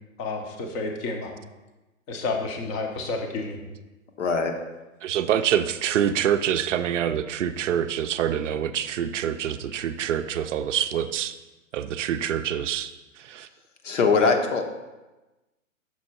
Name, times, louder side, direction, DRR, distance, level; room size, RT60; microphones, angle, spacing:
voice 1, 0.2-1.4 2.1-3.6, left 3 dB, 20° left, 3 dB, 0.5 m, -30 dB
voice 2, 4.2-4.5 13.8-14.6, left 4 dB, 60° left, 4 dB, 1.0 m, -21 dB
voice 3, 5.0-11.3 11.7-12.9 13.2-13.5, right 9 dB, 65° right, 10 dB, 0.5 m, -26 dB
6.2 x 4.3 x 4.2 m, 1.1 s
hypercardioid pair, 130°, 41 cm